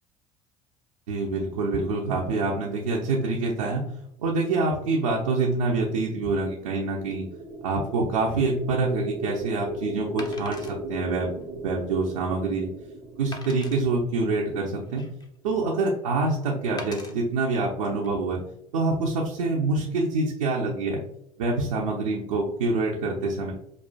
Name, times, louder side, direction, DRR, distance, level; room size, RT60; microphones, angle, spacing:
voice 1, 1.1-3.8 4.2-7.2 7.6-12.7 13.2-15.0 15.4-18.4 18.7-21.0 21.4-23.5, right 3 dB, 75° right, -3 dB, 0.6 m, -26 dB
sound 1, 6.6-14.7, right 1 dB, 35° right, 0.6 m, -36 dB
Wood, 8.6-8.7 10.2-10.8 11.4-11.5 12.0-12.1 13.3-13.8 14.6-15.4 16.8-17.1 17.9-18.1, left 2 dB, 25° left, 0.7 m, -41 dB
5.2 x 2.4 x 2.2 m, 0.76 s
figure-of-eight pair, 65°, 17 cm